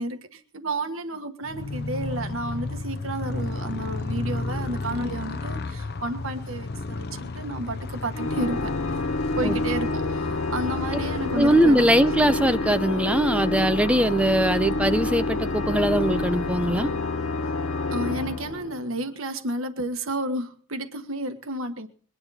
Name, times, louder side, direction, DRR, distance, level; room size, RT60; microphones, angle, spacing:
voice 1, 0.0-8.7 9.3-11.8 17.9-21.9, right 1 dB, 75° right, 1.5 m, -31 dB
Motorcycle, 1.4-12.1, left 3 dB, 50° left, 0.6 m, -33 dB
Organ, 8.1-19.1, left 2 dB, 75° left, 1.5 m, -28 dB
voice 2, 11.3-16.9, right 1 dB, 5° right, 0.7 m, -21 dB
22.0 x 10.0 x 4.2 m
head